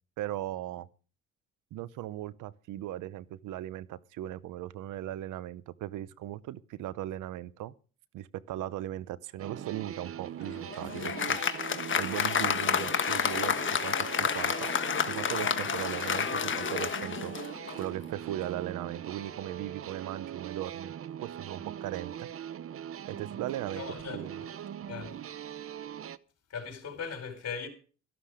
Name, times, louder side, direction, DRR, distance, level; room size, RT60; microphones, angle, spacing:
voice 1, 0.2-0.9 1.7-7.7 8.1-11.4 12.0-14.7 15.0-17.3 17.7-22.3 23.0-23.8 24.1-24.4, right 13 dB, 90° right, 0.8 m, -38 dB
sound 1, 9.4-26.2, right 10 dB, 50° right, 0.8 m, -41 dB
Applause, 10.4-17.9, left 7 dB, 40° left, 1.4 m, -30 dB
voice 2, 23.7-24.5 24.9-25.2 26.5-27.7, left 6 dB, 55° left, 4.9 m, -39 dB
13.5 x 12.0 x 5.0 m
cardioid pair, 90°, 30 cm